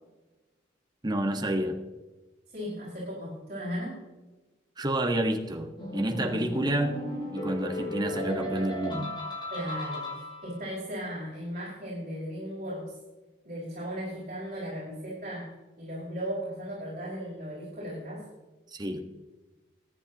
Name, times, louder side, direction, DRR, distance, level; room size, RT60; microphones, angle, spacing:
voice 1, 1.0-1.8 4.8-6.9 7.3-9.1 18.7-19.0, right 1 dB, 25° right, 5 dB, 1.3 m, -29 dB
voice 2, 2.5-4.0 9.5-13.0 13.4-15.5 15.8-18.3, equal, 45° right, -6 dB, 5.2 m, -36 dB
sound 1, 5.8-10.7, left 1 dB, 25° left, 5.3 m, -36 dB
22.5 x 9.9 x 2.9 m, 1.1 s
head